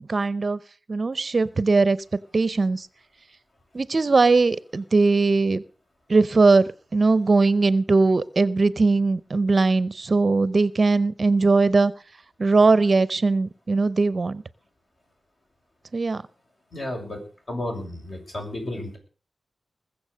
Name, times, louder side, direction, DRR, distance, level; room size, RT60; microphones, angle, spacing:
voice 1, 0.1-0.6 0.9-2.0 2.3-2.9 3.7-5.6 6.1-6.6 6.9-11.9 12.4-14.4 15.9-16.2, right 3 dB, 45° right, 17 dB, 0.6 m, -20 dB
voice 2, 16.7-17.2 17.5-19.0, left 1 dB, 50° left, 1 dB, 6.5 m, -32 dB
20.5 x 7.1 x 6.5 m, 0.38 s
wide cardioid pair, 105°, 0 cm